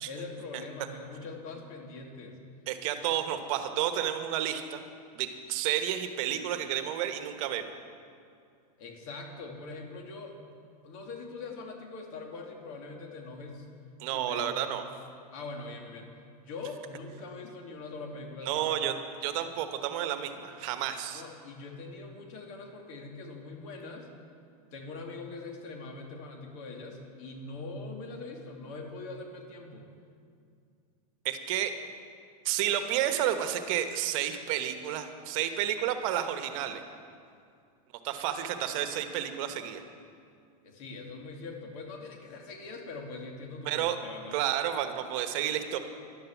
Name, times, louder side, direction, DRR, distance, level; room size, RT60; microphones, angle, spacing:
voice 1, 0.0-2.4 8.8-10.4 10.8-13.7 14.1-14.8 15.3-16.1 16.5-18.8 21.1-24.1 24.7-29.9 40.6-44.4, left 3 dB, 60° left, 1 dB, 2.6 m, -42 dB
voice 2, 2.7-4.8 5.1-7.7 14.0-14.8 18.4-18.9 19.2-21.2 31.2-31.8 32.4-36.8 38.0-39.8 43.6-44.0 44.3-45.8, right 11 dB, 55° right, 8 dB, 1.2 m, -31 dB
11.5 x 10.5 x 7.2 m, 2.4 s
supercardioid pair, 135°, 20 cm